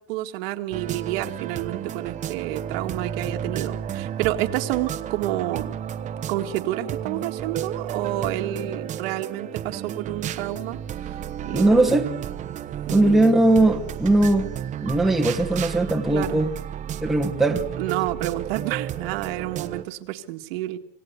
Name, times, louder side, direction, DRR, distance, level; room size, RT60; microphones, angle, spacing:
voice 1, 0.1-5.8 6.3-11.8 12.9-13.4 16.1-16.4 17.8-20.8, right 15 dB, 80° right, 1.9 m, -29 dB
sound 1, 0.7-19.8, right 9 dB, 25° right, 1.0 m, -32 dB
voice 2, 11.5-12.1 12.9-14.5 14.8-16.5 17.0-17.6, right 2 dB, ahead, 1.2 m, -19 dB
26.5 x 17.5 x 8.1 m
cardioid pair, 175°, 29 cm